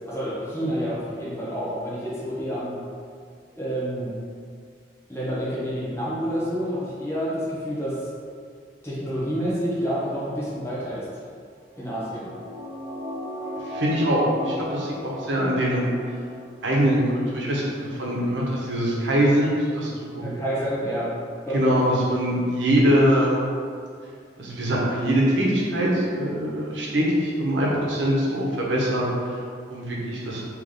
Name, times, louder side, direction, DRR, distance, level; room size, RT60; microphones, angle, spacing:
voice 1, 0.1-2.8 3.5-4.1 5.1-8.0 8.8-11.2 11.8-12.3 20.2-21.1 21.4-21.8, equal, 15° left, -8 dB, 1.0 m, -28 dB
sound 1, 11.7-16.5 16.8-16.9, equal, 15° right, 1.3 m, -36 dB
voice 2, 13.6-15.8 16.6-17.0 17.3-20.2 21.5-23.3 24.4-29.0 29.7-30.4, equal, 85° right, -4 dB, 0.9 m, -23 dB
3.4 x 3.0 x 3.8 m, 2.1 s
head